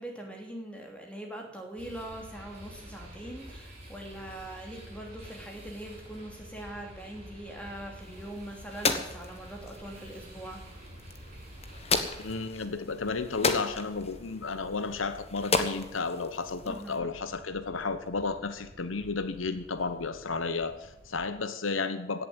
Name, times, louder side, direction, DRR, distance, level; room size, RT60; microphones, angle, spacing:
voice 1, 0.0-10.6 16.6-17.1, right 1 dB, 5° left, 1 dB, 3.0 m, -42 dB
sound 1, 1.8-12.5, equal, 35° right, 6.9 m, -48 dB
sound 2, 8.0-17.0, left 4 dB, 35° left, 1.4 m, -34 dB
sound 3, 9.7-21.3, right 1 dB, 50° right, 2.3 m, -53 dB
voice 2, 12.2-22.3, left 4 dB, 80° left, 10 dB, 1.0 m, -33 dB
17.0 x 7.5 x 9.0 m, 0.94 s
head